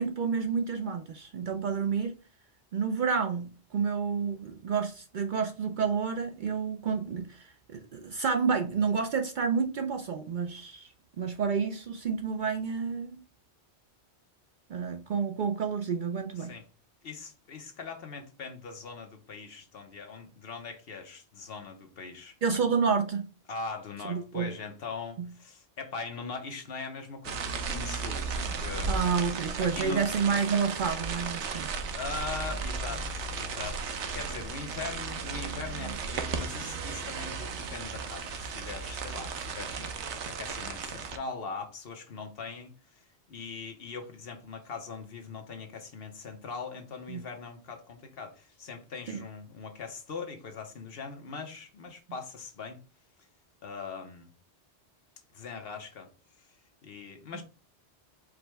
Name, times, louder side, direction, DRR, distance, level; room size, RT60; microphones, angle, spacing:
voice 1, 0.0-2.1 2.7-13.2 14.7-16.5 22.4-23.3 24.0-24.5 25.2-25.3 28.9-31.7 39.8-39.9 47.1-47.2 49.1-49.2 57.3-57.4, right 6 dB, 60° right, 0.6 m, -30 dB
voice 2, 17.0-22.4 23.5-28.9 29.6-30.0 31.9-52.8 53.6-54.3 55.3-56.1 56.8-57.4, left 4 dB, 60° left, 1.0 m, -41 dB
sound 1, 27.2-41.2, right 4 dB, 90° right, 1.0 m, -35 dB
4.9 x 2.1 x 4.5 m
omnidirectional pair, 1.1 m